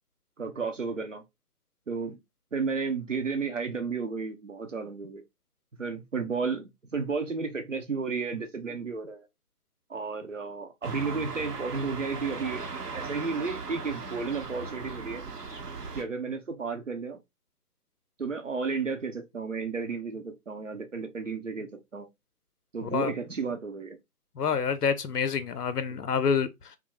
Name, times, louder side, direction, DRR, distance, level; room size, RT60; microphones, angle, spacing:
voice 1, 0.4-1.2 1.9-2.2 2.5-5.2 5.8-9.3 9.9-12.7 12.9-15.2 15.9-17.2 18.2-22.1 22.7-24.0, right 4 dB, 55° right, 0.6 m, -33 dB
sound 1, 10.8-16.0, right 4 dB, 90° right, 0.7 m, -38 dB
voice 2, 24.4-26.8, left 6 dB, 80° left, 0.6 m, -27 dB
2.3 x 2.0 x 3.0 m
figure-of-eight pair, 165°, 46 cm